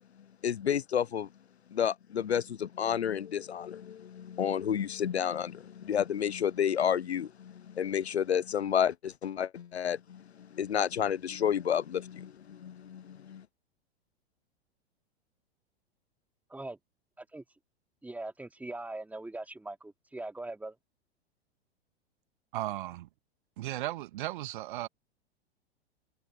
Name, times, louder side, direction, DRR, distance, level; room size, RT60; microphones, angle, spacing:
voice 1, 0.4-1.3 1.7-13.4, left 8 dB, 75° left, 0.6 m, -31 dB
voice 2, 18.0-20.8, right 2 dB, 5° right, 2.9 m, -41 dB
voice 3, 22.5-23.1 23.6-24.9, right 15 dB, 50° right, 1.8 m, -36 dB
figure-of-eight pair, 100°, 33 cm